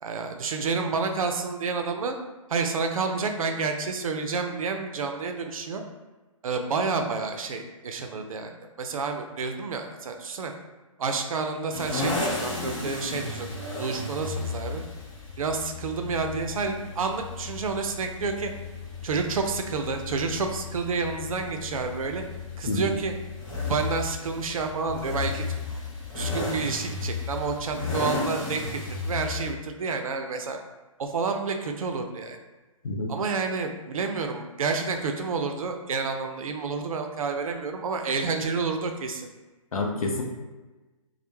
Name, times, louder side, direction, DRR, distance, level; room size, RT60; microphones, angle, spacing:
voice 1, 0.0-2.2 2.5-5.8 6.4-8.5 8.8-10.5 11.0-13.5 13.8-14.8 15.4-18.5 19.0-22.2 22.6-23.1 23.6-25.8 26.1-28.6 29.1-30.6 31.0-32.4 33.1-39.3, right 4 dB, 75° right, 5 dB, 0.4 m, -29 dB
sound 1, 11.7-29.5, left 3 dB, 40° left, 1.0 m, -34 dB
voice 2, 39.7-40.2, left 2 dB, 85° left, 1 dB, 0.5 m, -28 dB
2.1 x 2.0 x 3.0 m, 1.2 s
hypercardioid pair, 145°, 18 cm